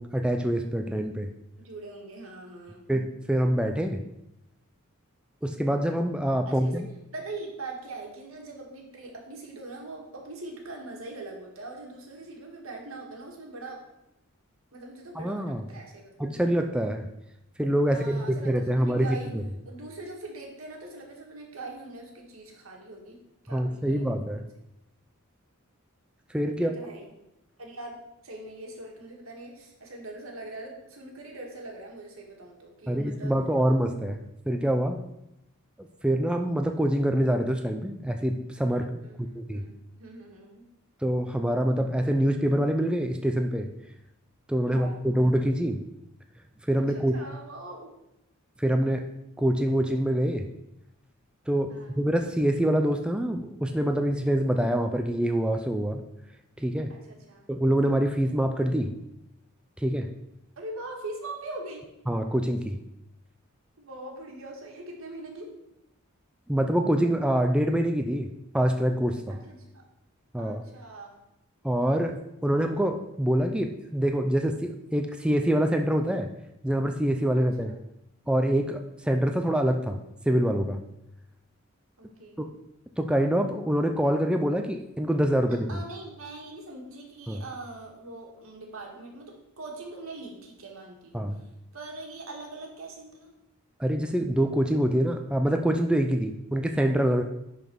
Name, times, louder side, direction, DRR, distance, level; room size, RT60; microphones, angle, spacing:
voice 1, 0.0-1.3 2.9-4.0 5.4-6.9 15.2-15.6 16.2-17.1 17.6-19.1 23.5-24.4 26.3-26.7 32.9-34.2 34.5-35.0 36.0-39.6 41.0-43.7 44.5-45.8 46.7-47.2 48.6-49.1 49.4-50.5 51.5-56.0 56.6-56.9 57.5-58.9 59.8-60.1 62.1-62.8 66.5-69.4 70.3-70.6 71.6-76.3 76.6-77.7 78.3-80.0 80.3-80.8 82.4-82.5 83.0-85.7 87.3-87.4 91.1-91.4 93.8-97.2, right 1 dB, 5° right, 5 dB, 0.4 m, -25 dB
voice 2, 1.6-2.8 6.4-6.8 7.1-13.8 14.7-16.1 17.9-19.3 19.7-23.2 23.4-24.5 26.5-27.1 27.6-33.3 39.0-40.7 44.6-45.0 46.8-47.9 51.7-52.0 56.9-57.5 60.6-61.9 63.8-65.5 69.3-69.9 70.4-71.2 77.3-77.8 82.0-82.4 85.4-93.3, right 2 dB, 80° right, 1 dB, 1.8 m, -42 dB
10.5 x 4.1 x 4.6 m, 0.85 s
head